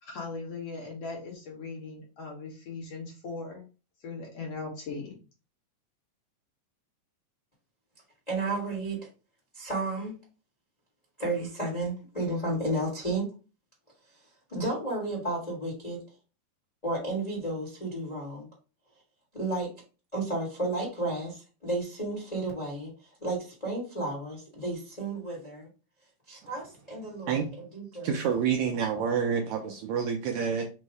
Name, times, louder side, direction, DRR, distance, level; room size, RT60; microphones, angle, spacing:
voice 1, 0.0-3.6 4.0-5.2, left 4 dB, 60° left, -1 dB, 1.8 m, -39 dB
voice 2, 8.3-9.0 9.5-10.1 11.2-13.2 14.5-16.0 16.8-18.5 19.3-19.7 20.1-22.9 23.2-25.7 26.3-27.4 27.7-28.2, right 2 dB, 40° left, -3 dB, 0.5 m, -32 dB
voice 3, 28.0-30.7, right 7 dB, 80° right, 3 dB, 1.6 m, -28 dB
5.4 x 2.1 x 4.6 m, 0.33 s
omnidirectional pair, 3.8 m